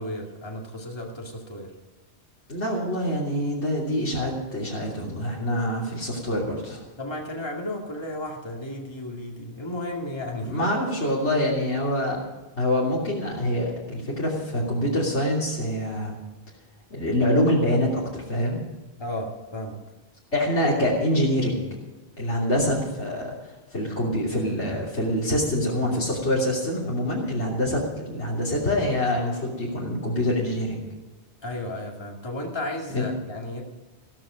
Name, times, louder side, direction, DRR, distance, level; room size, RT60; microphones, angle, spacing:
voice 1, 0.0-1.7 7.0-10.6 19.0-19.8 31.4-33.6, left 1 dB, 25° left, 0 dB, 2.3 m, -33 dB
voice 2, 2.5-6.8 10.4-12.2 12.6-16.2 16.9-18.6 20.3-21.6 22.2-23.3 23.7-30.8 32.9-33.0, left 1 dB, 85° left, -5 dB, 3.4 m, -25 dB
15.0 x 13.5 x 5.1 m, 1.2 s
omnidirectional pair, 1.1 m